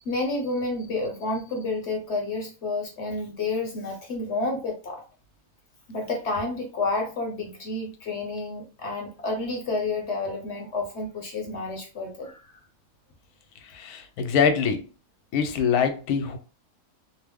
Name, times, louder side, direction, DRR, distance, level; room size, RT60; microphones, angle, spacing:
voice 1, 0.0-5.0 5.9-12.5, left 2 dB, 55° left, 0.9 m, -30 dB
voice 2, 13.6-14.9 15.3-16.4, left 6 dB, 85° left, 1.1 m, -24 dB
2.9 x 2.0 x 3.4 m
omnidirectional pair, 1.6 m